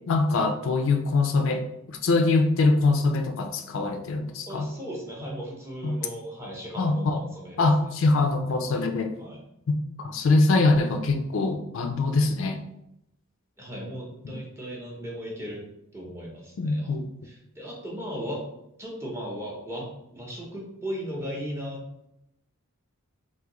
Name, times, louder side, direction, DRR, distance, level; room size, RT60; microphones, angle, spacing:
voice 1, 0.1-1.6 1.9-4.7 5.8-6.0 6.8-7.2 7.6-9.1 9.7-12.6 14.3-14.4 16.6-17.0, left 3 dB, 60° left, 6 dB, 0.3 m, -23 dB
voice 2, 4.5-7.7 9.2-9.4 13.6-15.6 15.9-17.0 17.2-18.5 18.8-21.8, equal, 10° right, -3 dB, 0.7 m, -36 dB
3.6 x 2.6 x 2.9 m, 0.82 s
head